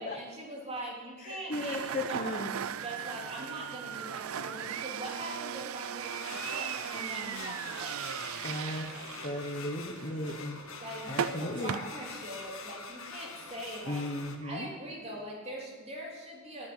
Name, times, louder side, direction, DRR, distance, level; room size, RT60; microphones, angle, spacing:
voice 1, 0.0-2.4 2.8-8.0 10.8-14.0 14.4-16.7, right 1 dB, 30° right, -2 dB, 3.3 m, -42 dB
voice 2, 1.2-2.6 8.4-10.6 11.1-11.8 13.9-14.7, left 1 dB, 40° left, 2 dB, 1.1 m, -36 dB
sound 1, 1.5-11.8, right 8 dB, 85° right, 0.5 m, -38 dB
sound 2, 6.1-14.4, left 5 dB, 80° left, 1.6 m, -45 dB
11.0 x 10.0 x 9.7 m, 1.4 s
head